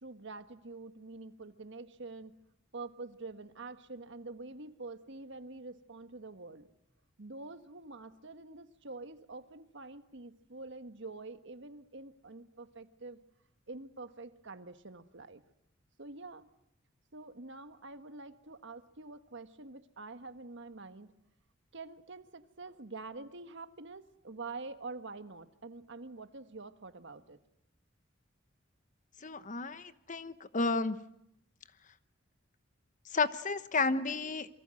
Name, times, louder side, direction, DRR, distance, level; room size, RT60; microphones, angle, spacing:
voice 1, 0.0-2.3 2.7-6.7 7.2-13.2 13.7-15.4 16.0-16.5 17.1-21.1 21.7-27.4, right 3 dB, 65° right, 9 dB, 1.4 m, -46 dB
voice 2, 29.2-31.0 33.1-34.5, left 3 dB, 40° left, 12 dB, 1.1 m, -32 dB
27.5 x 23.5 x 7.7 m, 0.78 s
head